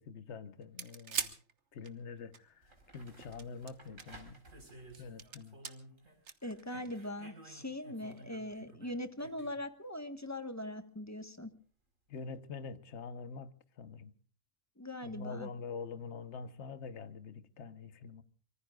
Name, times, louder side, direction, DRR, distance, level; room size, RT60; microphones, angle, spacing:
voice 1, 0.0-1.4 1.7-4.5 5.0-5.6 12.1-14.1 15.0-18.2, left 5 dB, 65° left, 1.3 m, -45 dB
sound 1, 0.6-2.4 3.2-4.2 4.7-5.7 6.3-7.1 8.2-8.3, right 6 dB, 60° right, 1.5 m, -41 dB
sound 2, 2.1-2.2 2.6-6.2 6.4-9.6 12.1-12.2, right 2 dB, 75° right, 4.8 m, -55 dB
voice 2, 6.4-11.5 14.8-15.5, left 1 dB, 15° left, 1.3 m, -41 dB
25.0 x 24.0 x 2.4 m
omnidirectional pair, 1.3 m